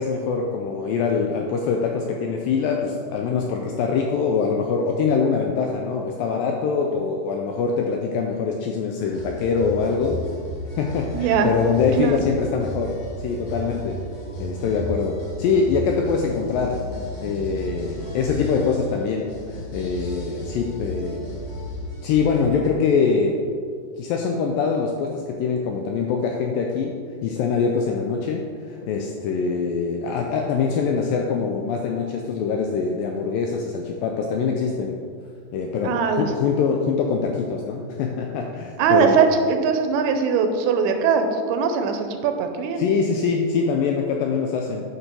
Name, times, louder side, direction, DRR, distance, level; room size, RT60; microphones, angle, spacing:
voice 1, 0.0-10.2 10.8-14.0 14.4-16.8 17.2-21.3 22.0-23.4 24.0-27.0 27.2-35.0 35.5-39.2 42.8-44.9, left 5 dB, 90° left, 2 dB, 2.0 m, -24 dB
sound 1, 9.0-22.4, right 1 dB, 50° left, 3.2 m, -34 dB
voice 2, 11.1-11.5 12.0-12.1 35.8-36.3 38.8-42.8, right 6 dB, 85° right, 6 dB, 2.6 m, -21 dB
9.7 x 5.8 x 4.5 m, 2.1 s
omnidirectional pair, 4.6 m